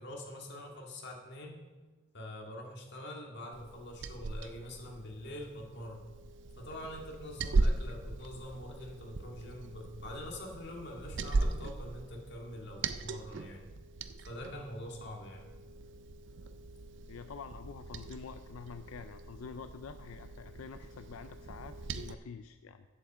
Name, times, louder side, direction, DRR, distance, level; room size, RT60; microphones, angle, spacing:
voice 1, 0.0-1.6 2.1-6.0 6.6-13.7 14.2-15.5, left 1 dB, 55° left, 0 dB, 2.0 m, -45 dB
Liquid, 3.5-22.1, right 3 dB, 60° right, 0.5 m, -38 dB
voice 2, 17.1-22.9, left 6 dB, 90° left, 9 dB, 0.4 m, -47 dB
8.2 x 7.9 x 7.3 m, 1.3 s
head